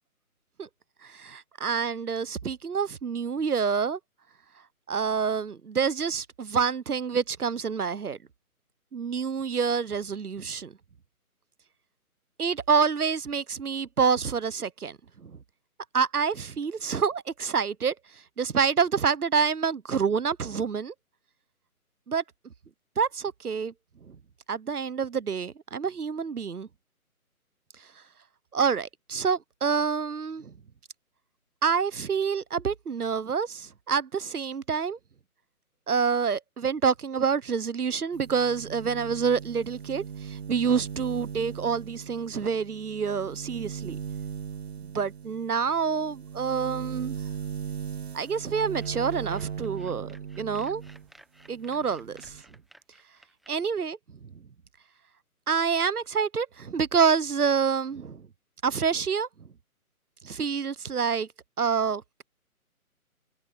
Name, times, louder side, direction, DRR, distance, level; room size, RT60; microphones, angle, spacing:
voice 1, 1.0-4.0 4.9-8.2 8.9-10.7 12.4-15.3 15.9-17.9 18.4-20.9 22.1-22.2 23.0-23.7 24.1-24.2 24.5-26.7 28.5-30.5 31.6-35.0 35.9-44.0 44.9-47.2 48.1-50.8 51.5-52.4 53.5-54.0 55.5-58.2 58.6-59.3 60.2-61.3 61.6-62.2, right 6 dB, 80° right, 1.1 m, -27 dB
sound 1, 38.1-51.1 51.4-52.4, right 7 dB, 45° right, 1.5 m, -38 dB
sound 2, 48.3-53.5, right 1 dB, ahead, 0.8 m, -56 dB
figure-of-eight pair, 150°, 44 cm